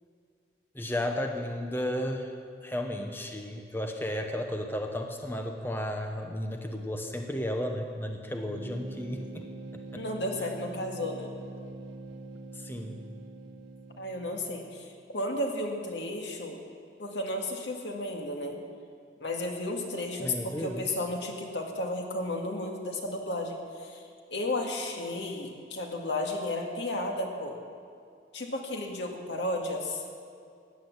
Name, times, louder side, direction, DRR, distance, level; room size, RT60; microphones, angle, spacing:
voice 1, 0.7-2.3 2.6-10.0 12.5-13.0 20.2-20.9, left 1 dB, 10° left, 4 dB, 0.8 m, -34 dB
sound 1, 8.3-14.9, right 2 dB, 85° right, 0.9 m, -44 dB
voice 2, 9.9-11.3 14.0-16.6 17.0-18.6 19.2-27.6 28.3-30.0, left 1 dB, 85° left, 2 dB, 1.9 m, -33 dB
15.5 x 9.7 x 7.3 m, 2.3 s
head